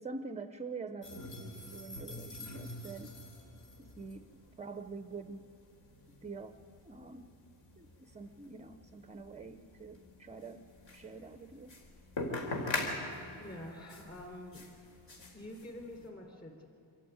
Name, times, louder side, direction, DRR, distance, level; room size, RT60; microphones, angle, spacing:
voice 1, 0.0-3.2 3.8-5.5 6.2-6.5 6.8-7.3 7.8-11.8, right 4 dB, 15° right, 10 dB, 0.5 m, -46 dB
sound 1, 1.0-16.1, left 2 dB, 60° left, 3.7 m, -44 dB
voice 2, 13.4-14.6 15.3-16.7, left 1 dB, 20° left, 2 dB, 3.5 m, -47 dB
26.0 x 14.5 x 9.4 m, 2.9 s
wide cardioid pair, 165°, 49 cm